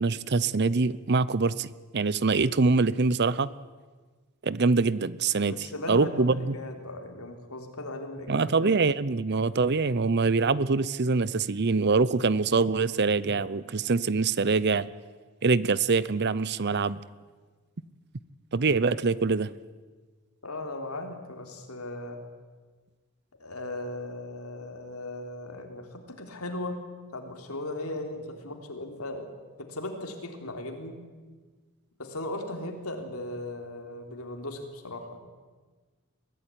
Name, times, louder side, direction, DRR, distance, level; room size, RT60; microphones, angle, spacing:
voice 1, 0.0-3.5 4.4-6.5 8.3-14.9 15.4-17.0 18.5-19.5, right 4 dB, 50° right, 18 dB, 0.7 m, -24 dB
voice 2, 5.4-8.7 20.4-22.2 23.4-26.8 27.1-29.3 29.6-31.0 32.0-35.2, left 1 dB, 80° left, 4 dB, 3.6 m, -37 dB
23.5 x 16.0 x 9.9 m, 1.4 s
head